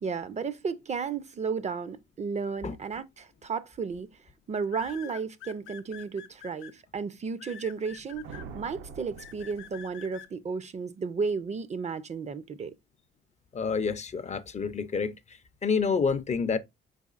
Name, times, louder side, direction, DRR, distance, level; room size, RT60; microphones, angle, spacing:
voice 1, 0.0-4.1 4.5-12.7, right 5 dB, 35° right, 0.5 m, -33 dB
sound 1, 3.2-3.5 4.7-6.7 7.4-8.4 9.2-10.3, left 10 dB, 85° left, 0.6 m, -46 dB
sound 2, 7.8-10.3, right 5 dB, 80° right, 0.7 m, -46 dB
voice 2, 13.5-16.6, left 5 dB, 35° left, 0.5 m, -28 dB
4.8 x 4.1 x 2.4 m
cardioid pair, 90°, 20 cm